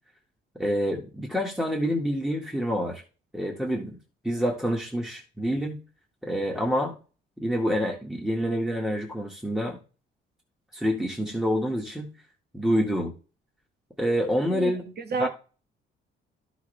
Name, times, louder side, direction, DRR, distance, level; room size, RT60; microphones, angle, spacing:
voice 1, 0.6-3.0 3.3-4.0 4.2-5.8 6.2-6.9 7.4-9.8 10.7-12.1 12.5-13.1 14.0-14.8 15.2-15.3, equal, ahead, 0 dB, 2.0 m, -27 dB
voice 2, 14.5-15.3, right 4 dB, 55° right, 7 dB, 1.7 m, -31 dB
11.5 x 6.1 x 3.5 m, 0.35 s
cardioid pair, 90°, 20 cm